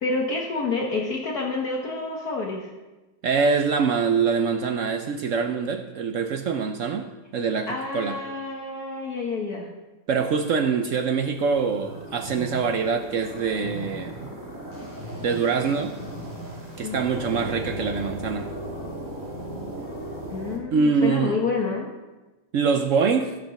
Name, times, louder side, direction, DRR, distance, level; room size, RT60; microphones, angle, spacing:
voice 1, 0.0-2.7 7.7-9.7 16.8-17.1 20.3-21.9, left 3 dB, 55° left, -1 dB, 1.6 m, -28 dB
voice 2, 3.2-7.7 7.9-8.2 10.1-14.3 15.2-15.9 16.8-18.5 20.7-21.4 22.5-23.4, right 5 dB, 70° right, 5 dB, 0.7 m, -24 dB
sound 1, 11.3-20.6, equal, 10° right, 2.1 m, -36 dB
14.5 x 5.2 x 5.8 m, 1.1 s
omnidirectional pair, 2.0 m